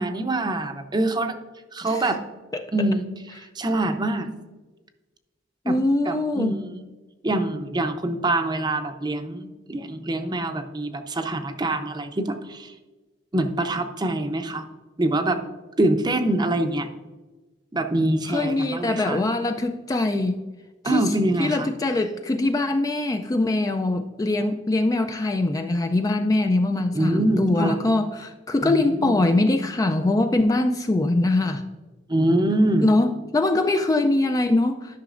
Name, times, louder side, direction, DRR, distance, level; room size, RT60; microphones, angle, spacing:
voice 1, 0.0-1.4 1.7-2.2 2.7-4.3 5.7-5.8 6.1-6.9 7.2-12.7 13.3-14.7 15.0-15.4 15.8-16.9 17.7-19.2 20.8-21.7 26.9-27.8 28.6-29.2 32.1-32.9, right 1 dB, 25° right, 7 dB, 0.6 m, -25 dB
voice 2, 5.7-6.5 18.3-20.4 20.8-21.0 21.4-31.6 32.8-35.0, left 2 dB, 20° left, 6 dB, 0.3 m, -22 dB
11.5 x 5.9 x 2.5 m, 1.2 s
head